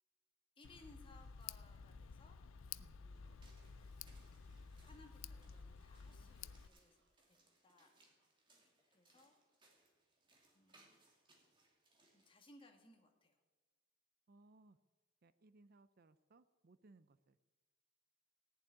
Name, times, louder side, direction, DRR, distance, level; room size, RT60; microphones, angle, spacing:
Tick, 0.6-6.7, left 6 dB, 80° left, 0.5 m, -53 dB
voice 1, 0.6-2.4 3.0-3.5 3.8-3.9 4.8-7.0 7.3-7.4 7.6-7.9 8.6-9.7 10.5-11.0 12.1-13.4, left 2 dB, 25° left, 3 dB, 2.0 m, -65 dB
Toilet flush, 3.1-7.4, right 1 dB, 70° right, 3.6 m, -76 dB
sound 1, 3.2-12.3, right 2 dB, 25° right, 2.7 m, -72 dB
voice 2, 14.3-14.8 15.2-17.5, right 2 dB, 50° right, 14 dB, 0.5 m, -66 dB
17.5 x 7.4 x 9.8 m, 1.3 s
head